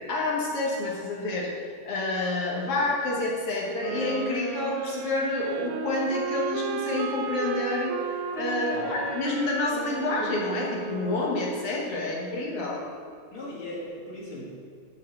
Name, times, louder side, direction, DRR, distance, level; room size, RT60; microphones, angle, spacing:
voice 1, 0.1-12.8, left 2 dB, 55° left, -3 dB, 1.8 m, -28 dB
sound 1, 3.7-11.6, right 6 dB, 85° right, 1.7 m, -34 dB
voice 2, 13.3-14.5, left 1 dB, 40° left, -6 dB, 2.8 m, -39 dB
11.5 x 4.7 x 5.9 m, 2.3 s
omnidirectional pair, 3.9 m